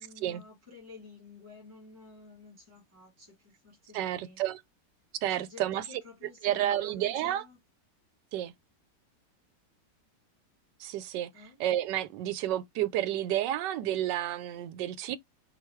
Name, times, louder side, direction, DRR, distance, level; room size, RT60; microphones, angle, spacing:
voice 1, 0.0-4.4 5.3-7.6 11.3-11.6, left 4 dB, 10° right, 1.6 m, -51 dB
voice 2, 3.9-4.6 5.2-5.8 6.4-7.4 8.3-8.5 10.8-11.3 11.6-15.2, right 12 dB, 85° right, 1.2 m, -30 dB
3.9 x 2.5 x 4.3 m
omnidirectional pair, 1.8 m